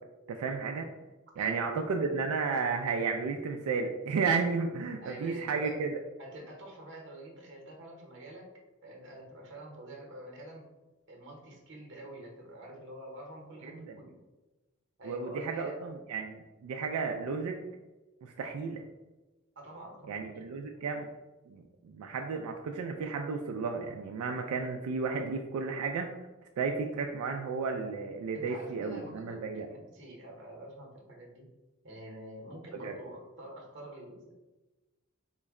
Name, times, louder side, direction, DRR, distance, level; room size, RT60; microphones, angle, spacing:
voice 1, 0.3-0.9 1.4-6.0 13.6-14.0 15.0-17.6 18.2-18.8 20.1-21.1 21.5-26.1 26.6-29.7 32.8-32.9, right 4 dB, 90° right, 3 dB, 0.3 m, -33 dB
voice 2, 1.4-1.8 5.0-5.7 6.2-8.5 8.8-10.6 11.1-14.1 15.0-15.8 19.6-20.9 28.3-31.5 31.8-34.3, right 1 dB, 55° right, 0 dB, 0.8 m, -47 dB
3.8 x 2.1 x 3.5 m, 1.1 s
head